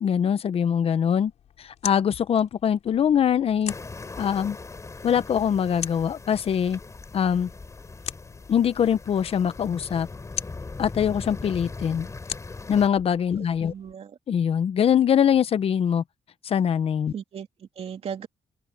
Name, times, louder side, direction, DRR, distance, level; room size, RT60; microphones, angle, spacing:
voice 1, 0.0-1.3 1.6-3.7 4.2-4.6 5.0-6.8 7.1-7.5 8.5-10.1 10.8-12.1 12.7-13.7 14.3-16.0 16.4-17.1, left 8 dB, 55° left, 1.0 m, -23 dB
sound 1, 1.2-13.9, left 10 dB, 75° left, 4.0 m, -42 dB
sound 2, 3.7-12.9, left 3 dB, 25° left, 3.5 m, -40 dB
voice 2, 13.4-14.2 17.1-18.3, right 8 dB, 60° right, 2.8 m, -37 dB
open air
cardioid pair, 90°, 12 cm